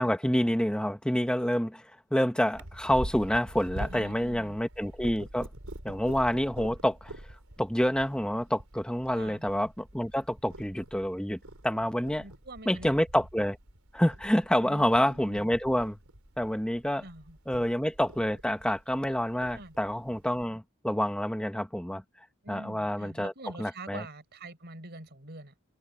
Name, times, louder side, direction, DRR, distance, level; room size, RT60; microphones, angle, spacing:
voice 1, 0.0-1.8 2.1-5.5 5.8-7.1 7.6-12.2 12.6-13.6 13.9-16.0 16.4-17.0 17.5-22.0 22.5-23.3 23.6-24.0, equal, 5° left, 1.3 m, -28 dB
Purr, 2.5-20.5, right 1 dB, 80° right, 3.7 m, -45 dB
voice 2, 3.9-4.6 9.1-9.4 12.2-12.9 14.6-15.5 17.0-17.6 19.5-19.7 22.4-25.5, right 2 dB, 50° right, 4.9 m, -45 dB
head